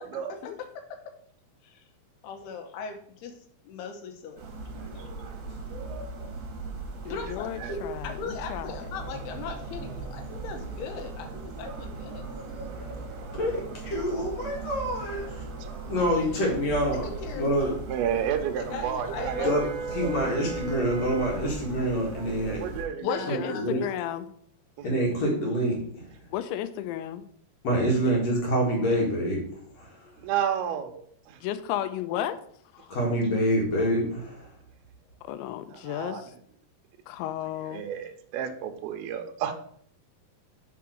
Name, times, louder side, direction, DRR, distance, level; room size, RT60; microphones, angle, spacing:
voice 1, 2.2-3.3 3.6-4.4 5.0-5.1 7.1-12.3 16.0-16.5 17.0-17.7 18.6-19.6 23.0-23.8, left 5 dB, 75° left, 3 dB, 2.6 m, -39 dB
sound 1, 4.4-22.9, right 3 dB, 60° right, 2.1 m, -38 dB
voice 2, 7.1-8.9 23.0-24.3 26.3-27.3 31.4-32.4 32.7-33.0 35.2-36.3 37.1-37.8, left 11 dB, 90° left, 12 dB, 2.9 m, -33 dB
voice 3, 13.3-15.4 15.9-17.1 17.4-17.7 19.4-19.6 19.9-22.6 23.3-23.8 24.8-25.8 27.6-29.4 29.8-30.1 32.9-34.5, equal, 50° left, -2 dB, 2.1 m, -26 dB
voice 4, 17.9-19.7 20.0-20.1 22.4-23.3 24.8-24.9 30.2-31.4 35.7-36.2 37.7-39.5, right 9 dB, 85° right, 5 dB, 2.2 m, -31 dB
6.1 x 4.7 x 6.0 m, 0.62 s
omnidirectional pair, 5.2 m